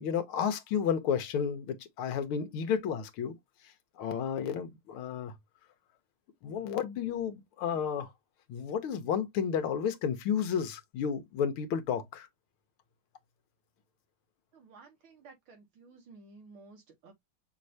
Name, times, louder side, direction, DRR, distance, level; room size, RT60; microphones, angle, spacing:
voice 1, 0.0-3.4 4.0-5.3 6.4-8.1 8.5-12.3, left 7 dB, 75° left, 1.7 m, -32 dB
voice 2, 14.5-17.1, right 4 dB, 70° right, 2.7 m, -54 dB
6.4 x 3.1 x 2.7 m
omnidirectional pair, 2.4 m